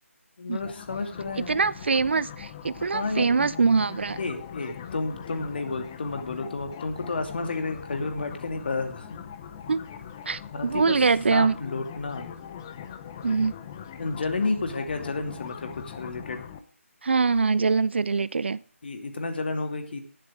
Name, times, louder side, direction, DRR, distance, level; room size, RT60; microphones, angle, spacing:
voice 1, 0.4-1.6 2.9-3.4 4.2-9.1 10.5-12.3 14.0-16.4 18.8-20.0, left 3 dB, 45° left, 2.5 m, -31 dB
sound 1, 0.6-16.6, left 8 dB, 15° left, 0.7 m, -41 dB
voice 2, 1.5-4.2 9.7-9.8 10.3-11.6 13.2-13.5 17.0-18.6, right 4 dB, 50° right, 0.5 m, -23 dB
19.0 x 8.2 x 3.6 m
figure-of-eight pair, 170°, 8 cm